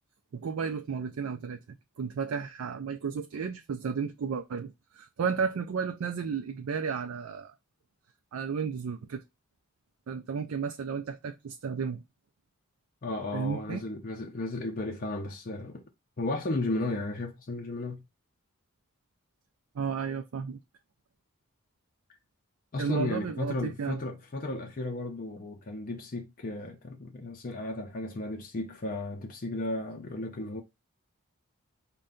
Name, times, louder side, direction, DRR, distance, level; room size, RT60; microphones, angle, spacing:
voice 1, 0.3-1.6 2.0-7.5 8.3-9.2 10.1-12.0 13.3-13.8 19.7-20.6 22.8-24.0, right 6 dB, 70° right, 0.4 m, -33 dB
voice 2, 13.0-15.8 16.2-18.0 22.7-30.6, left 2 dB, 40° left, 0.5 m, -34 dB
5.3 x 2.2 x 3.7 m
head